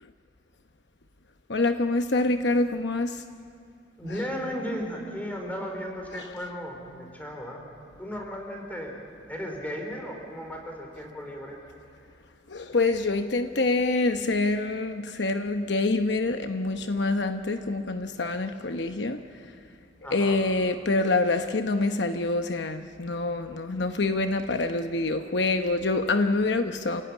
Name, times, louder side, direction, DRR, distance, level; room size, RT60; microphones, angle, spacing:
voice 1, 1.5-3.2 4.1-4.2 6.1-6.3 12.5-19.2 20.1-27.0, left 2 dB, 70° left, 7 dB, 0.9 m, -26 dB
voice 2, 4.0-7.7 8.0-9.0 9.3-11.6 20.0-20.4, equal, 10° left, 1 dB, 4.4 m, -35 dB
28.0 x 16.5 x 9.9 m, 2.5 s
head